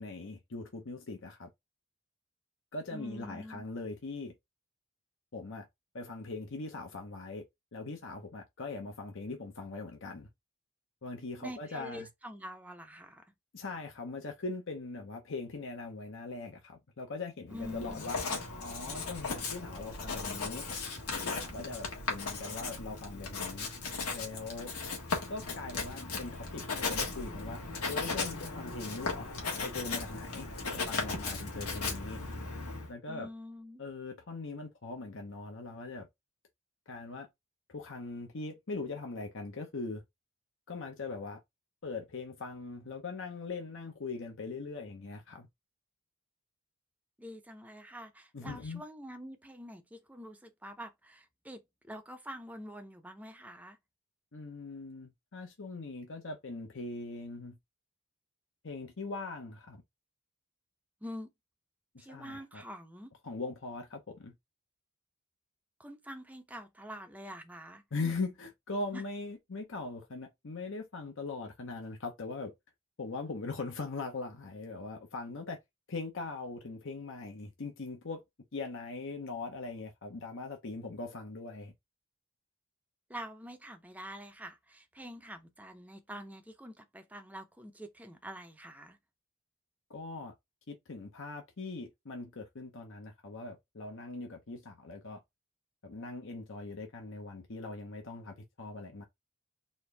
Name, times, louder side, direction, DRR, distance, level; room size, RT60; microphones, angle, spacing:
voice 1, 0.0-1.5 2.7-4.3 5.3-5.7 5.9-7.4 7.7-10.3 11.0-12.1 13.5-18.2 18.6-20.7 21.2-23.7 24.1-24.7 25.3-27.6 27.9-29.3 29.6-32.2 32.9-33.3 33.8-36.1 36.9-37.3 37.7-40.0 40.7-41.4 41.8-45.5 48.3-48.8 54.3-57.6 58.6-59.8 61.9-62.6 63.2-64.3 67.9-72.5 73.0-75.6 75.9-78.2 78.5-81.7 89.9-90.3 90.7-95.2 95.8-99.0, left 3 dB, 60° left, 0.8 m, -41 dB
voice 2, 2.9-3.6 11.4-13.3 17.5-18.1 33.1-33.8 47.2-51.6 51.9-53.8 61.0-61.3 62.0-63.1 65.8-67.8 68.9-69.0 83.1-89.0, equal, 5° right, 0.6 m, -46 dB
Writing, 17.5-32.9, left 4 dB, 85° left, 1.5 m, -37 dB
4.3 x 2.6 x 3.3 m
head